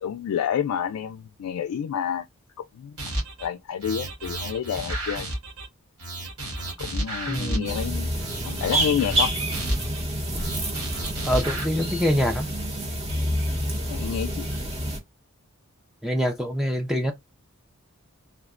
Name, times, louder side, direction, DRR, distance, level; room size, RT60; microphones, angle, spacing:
voice 1, 0.0-2.3 2.6-2.9 3.4-5.3 6.8-8.2 8.4-9.3 13.9-14.5, left 8 dB, 90° left, 0.3 m, -29 dB
sound 1, 3.0-3.5 3.8-5.7 6.0-7.8 8.2-10.0 10.4-11.7, right 1 dB, 80° right, 1.4 m, -32 dB
voice 2, 7.3-7.7 11.3-12.5 16.0-17.1, equal, ahead, 0.3 m, -25 dB
sound 2, 7.6-15.0, right 1 dB, 30° right, 0.7 m, -28 dB
3.4 x 2.1 x 2.4 m
head